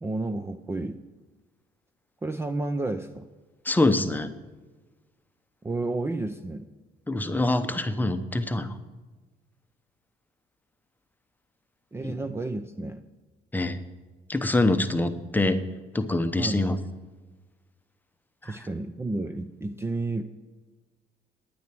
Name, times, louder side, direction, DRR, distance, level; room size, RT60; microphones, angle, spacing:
voice 1, 0.0-1.0 2.2-3.3 5.6-6.6 11.9-13.0 16.4-16.6 18.4-20.2, right 2 dB, 15° right, 8 dB, 0.5 m, -31 dB
voice 2, 3.6-4.3 7.1-8.7 12.0-12.1 13.5-13.8 14.3-15.6 15.9-16.8 18.4-18.6, left 2 dB, 10° left, 9 dB, 0.8 m, -25 dB
9.6 x 9.4 x 6.0 m, 1.3 s
cardioid pair, 110°, 17 cm